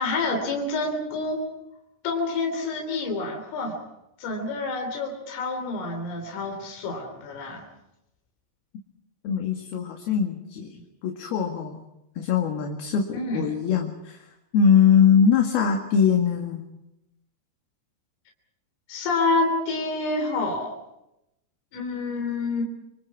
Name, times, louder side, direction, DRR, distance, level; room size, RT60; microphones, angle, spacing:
voice 1, 0.0-1.4 2.0-3.8 4.2-7.7 13.1-13.6 18.9-20.7 21.7-22.6, left 3 dB, 85° left, 3 dB, 6.0 m, -28 dB
voice 2, 9.2-10.7 11.0-11.8 12.2-14.3 14.5-16.6, left 7 dB, 60° left, 2 dB, 3.6 m, -22 dB
29.5 x 26.0 x 4.9 m, 0.87 s
omnidirectional pair, 5.6 m